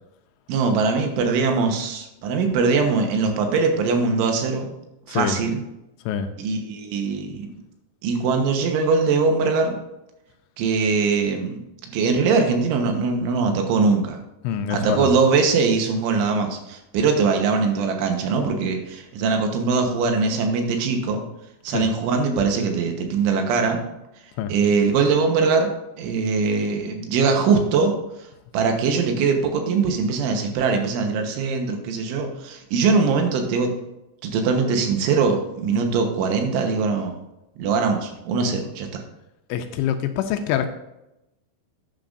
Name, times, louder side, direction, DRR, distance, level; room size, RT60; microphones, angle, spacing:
voice 1, 0.5-4.7 5.1-5.6 6.4-7.6 8.0-9.8 10.6-14.2 14.7-21.2 21.6-23.8 24.5-25.7 26.0-27.9 28.5-33.7 34.2-37.2 37.6-39.0, right 4 dB, 80° right, 4 dB, 3.5 m, -21 dB
voice 2, 14.4-15.1 21.7-21.9 24.4-24.5 39.5-40.7, left 9 dB, 80° left, 7 dB, 2.8 m, -25 dB
11.5 x 9.9 x 2.6 m, 0.91 s
omnidirectional pair, 5.6 m